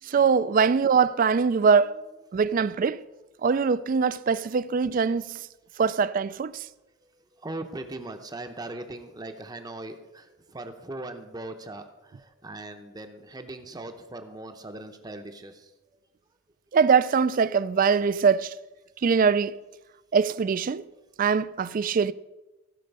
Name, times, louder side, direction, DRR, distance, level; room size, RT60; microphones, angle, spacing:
voice 1, 0.0-1.9 2.3-3.0 3.4-5.5 5.8-6.7 16.7-18.5 19.0-19.5 20.1-20.9 21.2-22.1, right 5 dB, 40° right, 0.3 m, -22 dB
voice 2, 7.0-15.7, right 2 dB, 20° right, 0.7 m, -40 dB
15.5 x 5.3 x 5.3 m
head